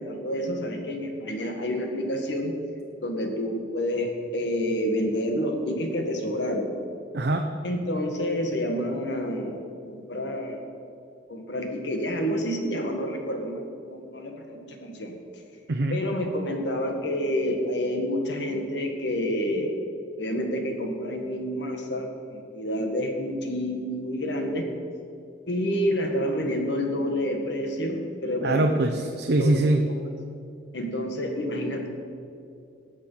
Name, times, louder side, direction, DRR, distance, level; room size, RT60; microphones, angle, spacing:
voice 1, 0.0-2.5 3.0-6.7 7.6-10.6 11.3-15.2 15.9-19.7 20.1-24.7 25.5-28.7 29.4-30.0 30.7-31.9, equal, 70° left, 3 dB, 1.6 m, -29 dB
voice 2, 7.1-7.5 15.7-16.0 28.4-29.8, right 2 dB, 60° right, 4 dB, 0.6 m, -23 dB
18.0 x 6.5 x 5.6 m, 2.5 s
head